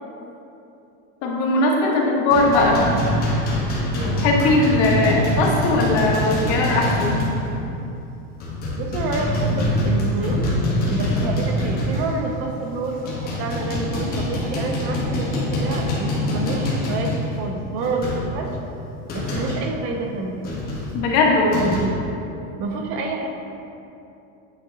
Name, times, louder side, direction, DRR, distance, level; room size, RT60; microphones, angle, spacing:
voice 1, 1.2-2.8 4.2-7.2 20.9-21.7, left 2 dB, 55° left, -1 dB, 1.2 m, -19 dB
voice 2, 1.9-2.2 4.0-4.2 8.7-10.4 10.9-13.0 13.2-18.5 19.1-20.4 21.6-21.9 22.6-23.3, right 3 dB, 35° right, 3 dB, 0.6 m, -28 dB
sound 1, 2.3-7.6 7.8-8.0 8.4-12.4 12.8-19.7 20.4-21.8, left 1 dB, 25° left, 1.2 m, -24 dB
8.5 x 3.6 x 3.8 m, 2.8 s
supercardioid pair, 165°, 38 cm